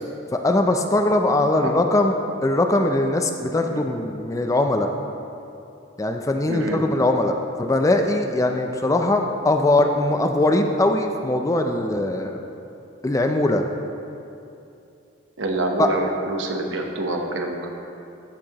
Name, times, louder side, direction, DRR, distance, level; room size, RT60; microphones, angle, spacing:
voice 1, 0.3-2.1 2.4-4.9 6.0-12.4 13.0-13.7 15.8-15.9, left 2 dB, 15° left, 5 dB, 0.3 m, -21 dB
voice 2, 6.5-6.8 15.4-17.7, right 2 dB, 70° right, 2 dB, 0.9 m, -26 dB
14.0 x 6.2 x 2.9 m, 2.7 s
head